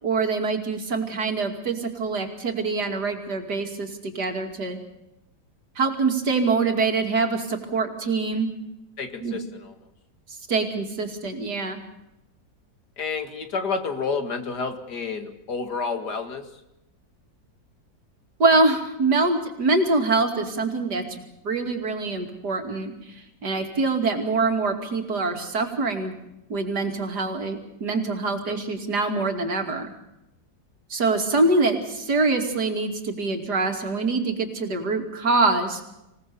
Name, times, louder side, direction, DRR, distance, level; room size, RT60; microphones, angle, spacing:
voice 1, 0.0-4.8 5.8-8.5 9.2-9.4 10.5-11.8 18.4-21.0 21.4-22.9 23.4-26.1 26.5-29.9 30.9-35.8, right 3 dB, 75° right, 5 dB, 3.3 m, -24 dB
voice 2, 9.0-9.8 13.0-16.5 28.5-28.6, left 4 dB, 75° left, 7 dB, 2.6 m, -30 dB
26.0 x 18.0 x 7.0 m, 0.88 s
omnidirectional pair, 1.8 m